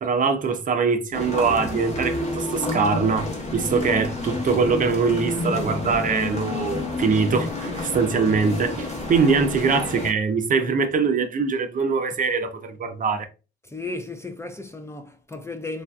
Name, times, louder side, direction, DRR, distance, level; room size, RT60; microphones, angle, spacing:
voice 1, 0.0-3.3 3.5-13.3, right 5 dB, 40° right, 0.5 m, -22 dB
sound 1, 1.1-10.1, left 2 dB, 35° left, 1.0 m, -29 dB
voice 2, 13.6-15.8, left 3 dB, 15° left, 0.4 m, -35 dB
3.3 x 2.5 x 2.3 m
cardioid pair, 90°, 20 cm